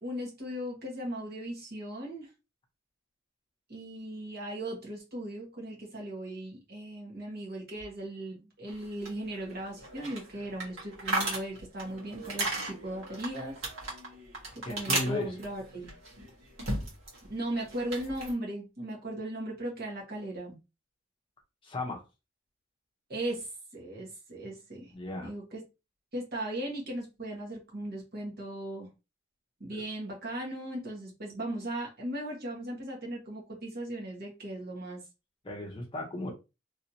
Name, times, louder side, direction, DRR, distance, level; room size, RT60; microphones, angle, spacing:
voice 1, 0.0-2.3 3.7-13.6 14.5-15.9 17.3-20.5 23.1-24.9 25.2-25.6 26.1-28.9 29.6-35.0, right 1 dB, 50° right, 1.4 m, -37 dB
sound 1, 8.7-17.2 17.5-18.3, right 2 dB, 80° right, 1.5 m, -36 dB
voice 2, 14.6-15.4 21.6-22.0 24.9-25.3 29.7-29.8 35.4-36.3, left 2 dB, 25° left, 0.8 m, -35 dB
3.2 x 2.8 x 2.8 m
head